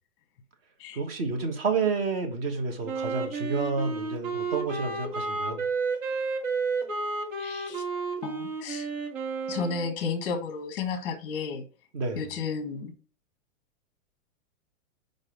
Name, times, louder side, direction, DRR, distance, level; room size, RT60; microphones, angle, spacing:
voice 1, 0.9-5.6 11.9-12.2, right 4 dB, 45° right, 1.4 m, -30 dB
Wind instrument woodwind instrument, 2.8-10.0, right 4 dB, 65° right, 1.9 m, -31 dB
voice 2, 7.4-7.8 8.2-8.9 9.5-11.6 12.2-12.9, left 5 dB, 15° left, 0.8 m, -32 dB
5.3 x 4.0 x 5.1 m
supercardioid pair, 180°, 42 cm